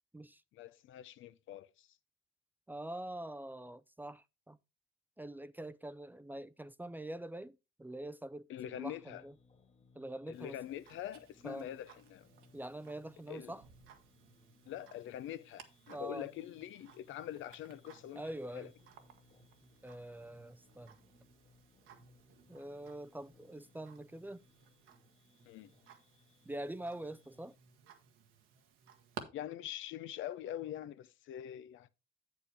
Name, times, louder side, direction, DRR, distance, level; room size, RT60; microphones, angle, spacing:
voice 1, 0.5-1.9 8.5-9.2 10.3-12.3 13.3-13.5 14.7-18.2 18.5-18.7 25.4-25.7 29.3-31.9, left 11 dB, 80° left, 0.6 m, -44 dB
voice 2, 2.7-4.6 5.2-9.3 10.0-10.6 11.4-11.7 12.5-13.6 15.9-16.3 18.1-18.7 19.8-21.0 22.5-24.4 26.5-27.5, right 1 dB, 10° right, 0.4 m, -45 dB
sound 1, 8.9-27.6, left 4 dB, 35° left, 1.4 m, -67 dB
Tick-tock, 10.3-29.2, right 8 dB, 90° right, 1.3 m, -58 dB
8.2 x 8.1 x 3.4 m
cardioid pair, 90°, 20 cm